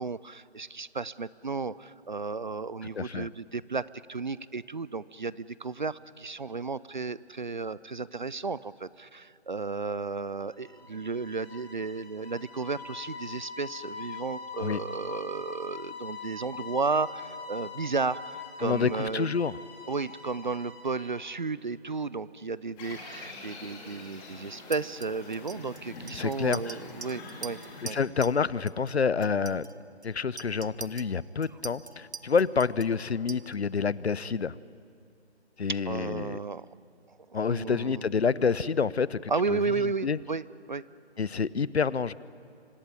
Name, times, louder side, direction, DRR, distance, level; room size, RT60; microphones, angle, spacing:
voice 1, 0.0-19.4 19.9-28.0 35.7-36.7 37.1-38.0 39.3-40.8, right 4 dB, 45° right, 19 dB, 0.5 m, -33 dB
voice 2, 2.9-3.3 14.6-14.8 18.6-19.6 26.1-26.8 27.8-29.7 30.0-34.5 35.6-36.4 37.3-39.6 40.0-40.2 41.2-42.1, left 5 dB, 70° left, 20 dB, 0.8 m, -28 dB
sound 1, 10.5-21.3, left 4 dB, 40° left, 7.0 m, -43 dB
sound 2, 22.8-27.8, left 2 dB, 10° left, 2.1 m, -45 dB
Chink clink, 24.7-28.4 28.7-28.9 29.2-33.8, right 5 dB, 70° right, 1.3 m, -44 dB
25.0 x 18.5 x 9.8 m, 2.4 s
figure-of-eight pair, 160°, 34 cm